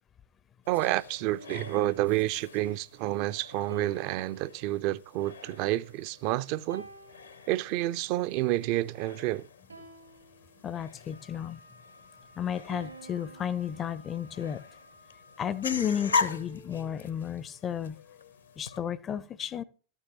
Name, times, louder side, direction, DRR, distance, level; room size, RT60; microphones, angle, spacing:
sound 1, 0.6-18.8, left 5 dB, 75° left, 0.7 m, -41 dB
voice 1, 0.7-6.9 7.5-9.5, right 16 dB, 45° right, 0.3 m, -29 dB
sound 2, 1.3-2.5 3.7-6.1 6.7-8.2 9.7-11.2 12.7-14.6 15.7-17.3, right 3 dB, 80° right, 4.1 m, -50 dB
voice 2, 10.6-11.6 12.4-14.8 15.4-18.0 18.6-19.6, left 9 dB, 25° left, 0.4 m, -33 dB
Wind instrument woodwind instrument, 11.1-16.2, left 2 dB, 90° left, 2.4 m, -57 dB
14.0 x 8.9 x 2.9 m
figure-of-eight pair, 90°, 0 cm